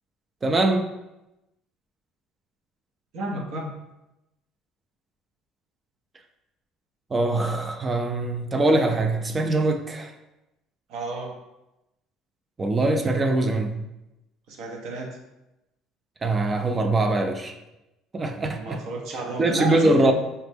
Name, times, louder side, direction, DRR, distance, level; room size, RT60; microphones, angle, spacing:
voice 1, 0.4-0.9 7.1-10.1 12.6-13.8 16.2-17.5 18.1-18.8 19.4-20.1, right 2 dB, 25° right, 6 dB, 0.3 m, -22 dB
voice 2, 3.1-3.8 10.9-11.3 14.5-15.2 18.6-20.1, right 2 dB, 70° right, 1 dB, 0.7 m, -31 dB
4.2 x 2.0 x 3.3 m, 0.94 s
cardioid pair, 105°, 0 cm